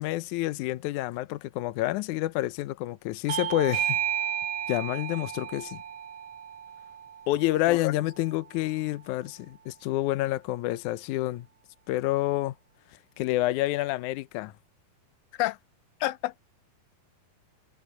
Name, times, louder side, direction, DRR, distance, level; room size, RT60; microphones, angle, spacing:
voice 1, 0.0-4.0 4.7-5.8 7.3-11.5 11.9-12.5 13.2-14.5, left 16 dB, 75° left, 2.0 m, -28 dB
Bell / Doorbell, 3.3-8.5, right 10 dB, 75° right, 2.7 m, -33 dB
voice 2, 16.0-16.4, left 17 dB, 90° left, 2.4 m, -29 dB
omnidirectional pair, 4.1 m